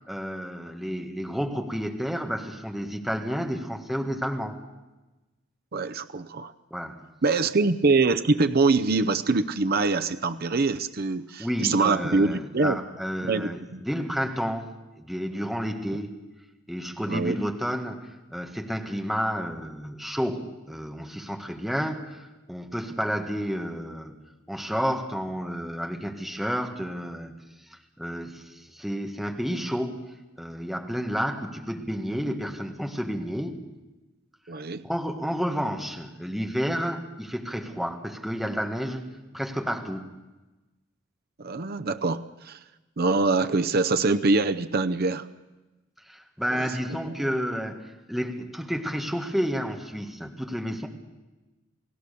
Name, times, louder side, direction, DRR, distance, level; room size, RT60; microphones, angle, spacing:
voice 1, 0.1-4.6 6.7-7.0 11.4-16.2 16.7-24.1 24.5-27.3 27.7-33.6 34.8-40.1 46.0-50.9, equal, ahead, 3 dB, 1.7 m, -31 dB
voice 2, 5.7-6.5 7.2-12.8 13.3-13.8 17.1-17.3 34.5-34.9 41.4-42.6 43.0-45.3 46.5-46.7, right 3 dB, 50° right, 11 dB, 0.7 m, -24 dB
28.5 x 17.5 x 6.9 m, 1.1 s
head